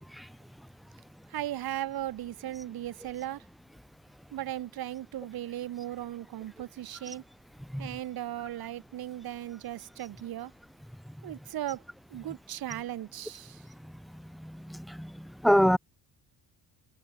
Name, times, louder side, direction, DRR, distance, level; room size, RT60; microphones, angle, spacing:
voice 1, 1.3-3.5 4.3-7.2 7.8-10.5 11.2-11.8 12.1-13.7, right 13 dB, 55° right, 1.9 m, -37 dB
voice 2, 14.4-15.1 15.4-15.8, equal, ahead, 0.4 m, -24 dB
open air
cardioid pair, 150°, 43 cm